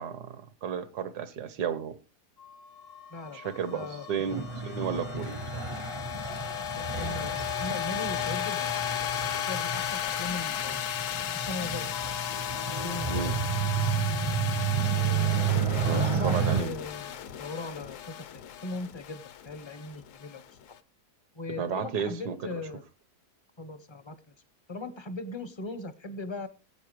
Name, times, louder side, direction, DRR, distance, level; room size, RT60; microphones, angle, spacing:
voice 1, 0.0-1.9 3.3-5.6 13.1-13.3 15.8-16.7 21.6-22.6, right 7 dB, 80° right, 1.5 m, -33 dB
sound 1, 2.4-20.7, left 11 dB, 60° left, 1.0 m, -35 dB
voice 2, 3.1-3.4 3.7-4.1 6.7-10.8 11.3-11.9 12.7-13.4 14.7-18.2 18.6-20.4 21.3-22.8 23.6-24.2 24.7-26.5, left 2 dB, 30° left, 0.5 m, -39 dB
sound 2, 4.3-16.6, right 7 dB, 35° right, 0.5 m, -31 dB
sound 3, 11.9-13.9, left 12 dB, 90° left, 1.5 m, -42 dB
18.5 x 8.5 x 3.1 m
omnidirectional pair, 1.7 m